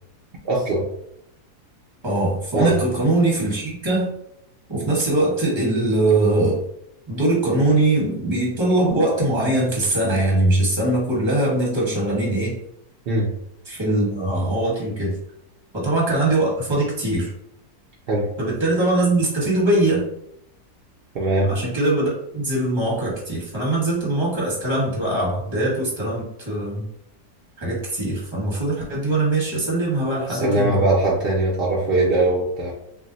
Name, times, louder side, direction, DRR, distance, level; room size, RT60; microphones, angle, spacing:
voice 1, 0.4-0.8 2.5-2.8 13.1-13.3 18.1-18.3 21.1-21.5 30.3-32.7, right 2 dB, 65° right, -4 dB, 0.5 m, -20 dB
voice 2, 2.0-4.1 4.7-6.6 7.1-12.6 13.7-15.2 15.7-17.3 18.4-20.0 21.5-26.8 27.6-30.8, right 2 dB, 20° right, -5 dB, 1.0 m, -21 dB
2.6 x 2.1 x 3.8 m, 0.78 s
omnidirectional pair, 1.7 m